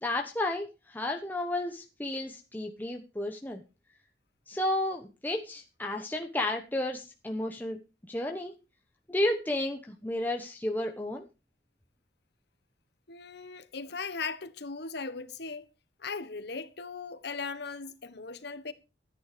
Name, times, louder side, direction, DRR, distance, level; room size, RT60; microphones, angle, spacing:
voice 1, 0.0-3.6 4.5-7.8 8.1-8.5 9.1-11.2, left 1 dB, 10° left, 1.2 m, -32 dB
voice 2, 13.1-15.7 16.0-18.7, left 4 dB, 65° left, 1.3 m, -38 dB
14.0 x 9.8 x 5.1 m
head